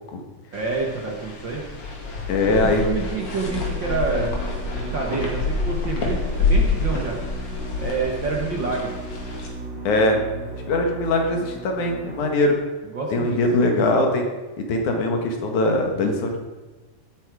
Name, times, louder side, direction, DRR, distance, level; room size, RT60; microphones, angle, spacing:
sound 1, 0.5-9.5, left 3 dB, 50° left, 2.9 m, -27 dB
voice 1, 0.5-1.6 2.4-4.4 4.7-7.2 7.8-9.0 12.8-13.8, right 4 dB, 45° right, 0 dB, 1.6 m, -28 dB
voice 2, 2.3-2.8 9.8-10.2 10.7-12.6 13.1-14.2 14.6-16.4, left 2 dB, 75° left, 2 dB, 3.1 m, -21 dB
sound 2, 3.1-12.5, right 2 dB, 65° right, 5.2 m, -36 dB
16.5 x 8.7 x 4.9 m, 1.2 s
omnidirectional pair, 3.6 m